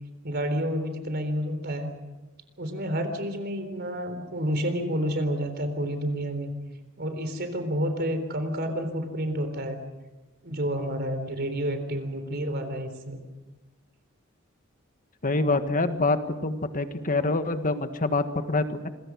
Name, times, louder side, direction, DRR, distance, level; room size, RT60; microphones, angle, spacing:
voice 1, 0.2-1.9 2.6-6.5 7.0-9.8 10.4-13.2, equal, 50° right, 8 dB, 3.8 m, -29 dB
voice 2, 15.2-18.9, left 2 dB, 40° left, 8 dB, 1.6 m, -26 dB
27.0 x 22.5 x 6.4 m, 1.1 s
head